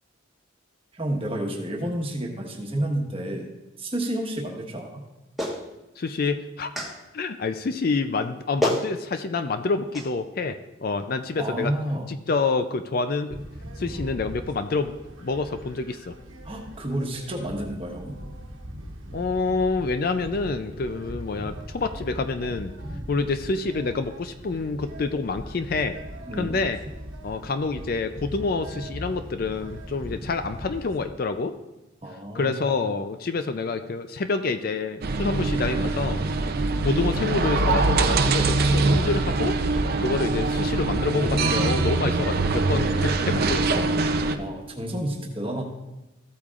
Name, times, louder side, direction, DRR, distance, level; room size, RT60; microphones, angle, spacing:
voice 1, 0.9-3.5 3.8-5.0 11.4-12.0 16.4-18.2 26.3-26.6 32.0-32.6 44.3-45.6, right 1 dB, 25° right, 0 dB, 1.3 m, -30 dB
Clapping, 5.4-5.6 6.7-6.9 8.2-8.3 8.6-8.9 9.9-10.1, equal, ahead, 1.3 m, -26 dB
voice 2, 6.0-6.7 7.1-11.7 12.1-13.4 13.8-15.0 15.2-16.1 19.1-22.7 23.1-25.9 26.3-26.8 27.2-31.5 32.3-36.2 36.8-39.5 40.0-43.9, left 4 dB, 45° left, 9 dB, 0.4 m, -27 dB
sound 1, 13.3-31.1, equal, 75° right, 1.2 m, -39 dB
sound 2, 35.0-44.4, right 3 dB, 50° right, 0.5 m, -23 dB
15.0 x 8.5 x 2.5 m, 1.0 s
head